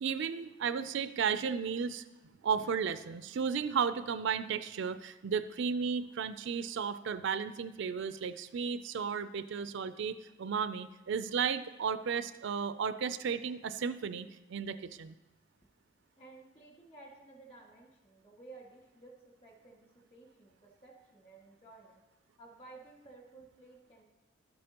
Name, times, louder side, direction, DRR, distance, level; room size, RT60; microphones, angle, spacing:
voice 1, 0.0-2.0 2.4-15.1, right 6 dB, 65° right, 12 dB, 0.4 m, -34 dB
voice 2, 16.2-22.0 22.4-24.0, right 3 dB, 30° left, 0 dB, 1.9 m, -55 dB
12.5 x 8.6 x 2.9 m, 1.1 s
head